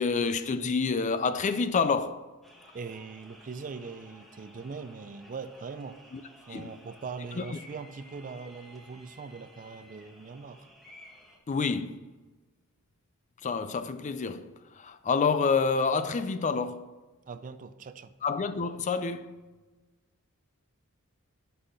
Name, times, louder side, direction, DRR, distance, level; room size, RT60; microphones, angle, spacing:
voice 1, 0.0-2.3 6.5-6.7 7.3-7.6 11.5-12.1 13.4-17.0 18.2-19.4, left 5 dB, 35° left, 0.4 m, -28 dB
sound 1, 2.4-11.4, equal, ahead, 1.2 m, -54 dB
voice 2, 2.7-6.0 6.5-10.7 17.3-18.1, right 5 dB, 35° right, 0.4 m, -41 dB
6.3 x 5.5 x 6.5 m
head